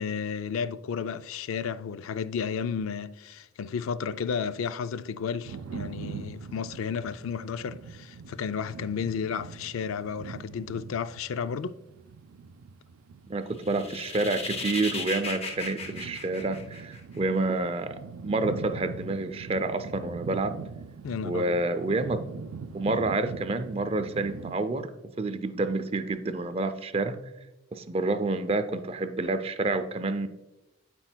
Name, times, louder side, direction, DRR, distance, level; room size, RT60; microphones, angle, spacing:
voice 1, 0.0-11.8 21.0-21.6, left 6 dB, 75° left, 0.4 m, -32 dB
sound 1, 5.4-24.6, right 5 dB, 90° right, 0.4 m, -42 dB
voice 2, 13.3-20.6 21.2-22.3 22.7-24.9 25.2-27.2 27.7-30.3, right 2 dB, 30° right, 0.4 m, -29 dB
sound 2, 13.6-17.2, left 3 dB, 30° left, 0.7 m, -36 dB
13.0 x 4.5 x 2.2 m
head